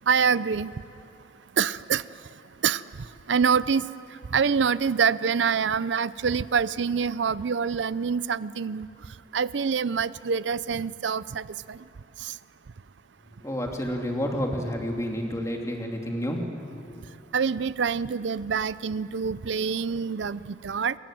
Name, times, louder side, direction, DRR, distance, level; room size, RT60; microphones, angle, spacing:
voice 1, 0.1-0.7 1.6-2.0 2.6-2.8 3.3-3.9 4.3-8.9 9.3-11.8 12.2-12.3 17.3-21.0, right 6 dB, 75° right, 17 dB, 0.5 m, -25 dB
voice 2, 13.4-16.4 16.7-16.9, equal, 15° left, 1 dB, 2.9 m, -30 dB
27.5 x 23.0 x 7.7 m, 2.6 s
head